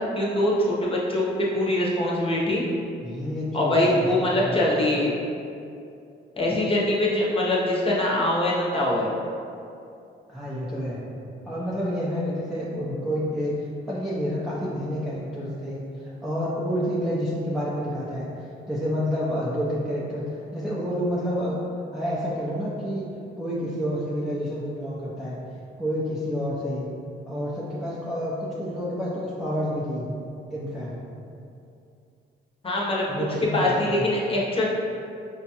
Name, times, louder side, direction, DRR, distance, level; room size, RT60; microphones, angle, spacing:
voice 1, 0.2-2.6 3.5-5.1 6.4-9.1 32.6-33.2 33.5-34.7, left 1 dB, 30° left, -4 dB, 0.8 m, -23 dB
voice 2, 3.0-4.6 10.3-11.1 11.5-18.3 18.7-21.6 21.9-23.1 23.4-25.4 25.8-26.9 27.3-30.1 30.5-31.0 33.1-34.1, equal, ahead, -8 dB, 0.5 m, -29 dB
4.9 x 2.3 x 2.8 m, 2.5 s
cardioid pair, 90°, 20 cm